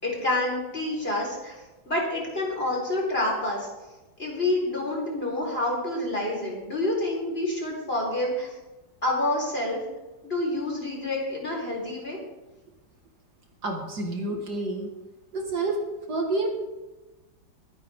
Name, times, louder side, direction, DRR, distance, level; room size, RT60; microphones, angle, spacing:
voice 1, 0.0-1.5 1.9-3.7 4.2-8.5 9.0-9.8 10.2-12.2, left 1 dB, 30° left, -2 dB, 4.3 m, -28 dB
voice 2, 13.6-14.9 15.3-15.8 16.1-16.5, right 2 dB, 55° right, 1 dB, 2.2 m, -28 dB
23.5 x 9.6 x 3.6 m, 1.1 s
omnidirectional pair, 2.1 m